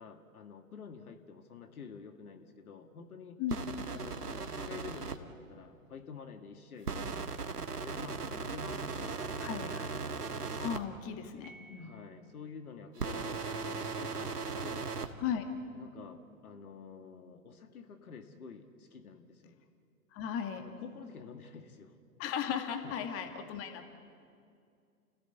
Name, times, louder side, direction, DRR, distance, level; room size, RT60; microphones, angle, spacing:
voice 1, 0.0-3.4 3.9-7.4 7.7-9.9 11.8-14.9 15.7-19.6 20.6-22.0 22.8-23.0 23.4-23.5, left 6 dB, 70° left, 6 dB, 2.1 m, -49 dB
sound 1, 3.5-5.2 6.9-10.8 13.0-15.1, right 4 dB, 90° right, 1.7 m, -37 dB
voice 2, 9.4-9.9 10.6-11.9 15.2-15.4 20.1-20.6 22.2-23.9, left 8 dB, 30° left, 6 dB, 2.1 m, -36 dB
Piano, 11.4-12.6, right 2 dB, 20° right, 1.5 m, -57 dB
30.0 x 16.5 x 8.1 m, 2.4 s
figure-of-eight pair, 115°, 45 cm